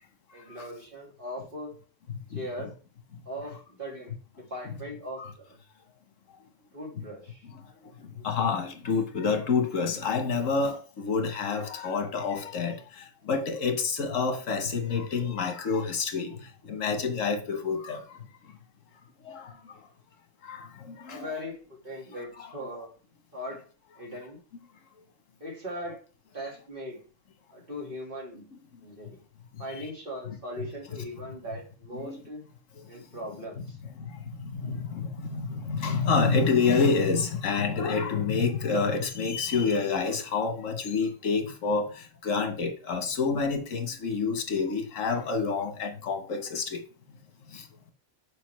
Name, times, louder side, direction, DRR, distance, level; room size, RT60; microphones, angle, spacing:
voice 1, 0.3-1.7 2.3-2.7 3.3-5.6 6.7-7.5 8.2-8.3 21.1-22.9 23.3-23.7 24.0-24.4 25.4-26.0 26.3-27.0 27.5-28.5 28.8-29.2 29.6-32.4 32.9-33.8, equal, 45° right, 2.0 m, -39 dB
voice 2, 8.2-16.4 16.7-18.0 19.2-19.5 20.4-21.2 29.8-29.9 32.0-32.2 33.6-33.7 34.0-46.8 47.5-47.6, left 5 dB, 90° left, 1.4 m, -28 dB
6.8 x 4.5 x 3.1 m
omnidirectional pair, 1.3 m